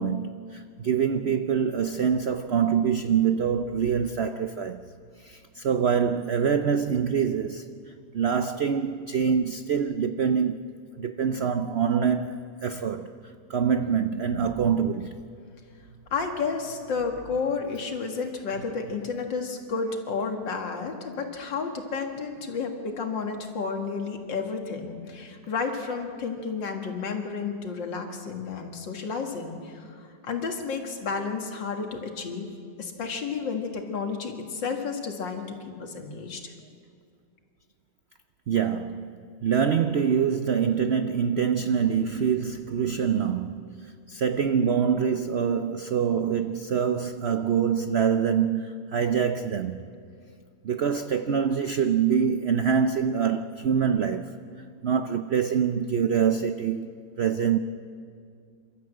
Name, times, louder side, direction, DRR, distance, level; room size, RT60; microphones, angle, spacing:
voice 1, 0.0-4.8 5.2-7.7 8.1-13.1 13.5-15.2 38.5-49.8 50.6-54.4 54.8-56.9 57.2-57.6, right 7 dB, 90° right, 0.5 m, -25 dB
voice 2, 16.1-32.5 32.8-36.5, left 5 dB, 85° left, 2.6 m, -31 dB
28.0 x 13.0 x 7.9 m
omnidirectional pair, 1.9 m